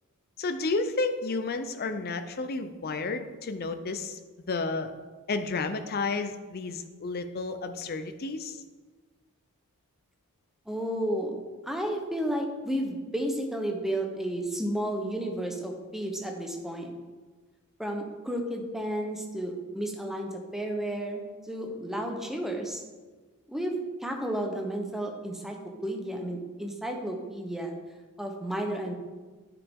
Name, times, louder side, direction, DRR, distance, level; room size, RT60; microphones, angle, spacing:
voice 1, 0.4-4.2 4.5-4.9 5.3-8.6, left 3 dB, 45° left, 8 dB, 0.5 m, -31 dB
voice 2, 10.7-11.3 11.6-16.9 17.8-22.8 23.5-25.6 25.8-27.7 28.2-28.9, right 1 dB, ahead, 2 dB, 0.8 m, -32 dB
9.8 x 5.0 x 3.6 m, 1.3 s
head